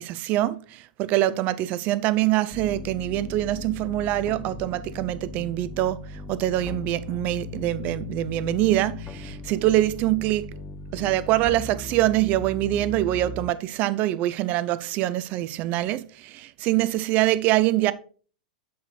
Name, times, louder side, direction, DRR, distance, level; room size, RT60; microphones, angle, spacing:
voice 1, 0.0-10.5 10.9-17.9, right 15 dB, 35° right, 0.4 m, -24 dB
sound 1, 2.5-13.5, left 3 dB, 15° left, 0.5 m, -38 dB
7.8 x 4.0 x 3.9 m
figure-of-eight pair, 95°, 5 cm